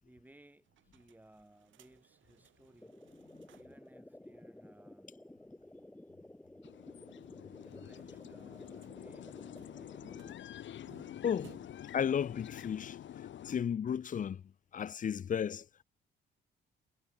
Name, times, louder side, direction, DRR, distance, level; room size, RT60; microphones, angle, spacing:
voice 1, 0.0-3.0 3.5-5.1 7.6-10.3, right 1 dB, 10° right, 3.8 m, -61 dB
sound 1, 0.6-3.9 4.2-4.3 4.6-4.7 7.4-12.0, right 12 dB, 75° right, 6.0 m, -63 dB
sound 2, 2.8-10.3, left 1 dB, 10° left, 2.4 m, -54 dB
sound 3, 6.6-13.6, left 11 dB, 70° left, 2.7 m, -48 dB
voice 2, 11.2-11.6 11.9-13.0 13.5-14.4 14.7-15.8, left 8 dB, 40° left, 0.7 m, -34 dB
cardioid pair, 90°, 20 cm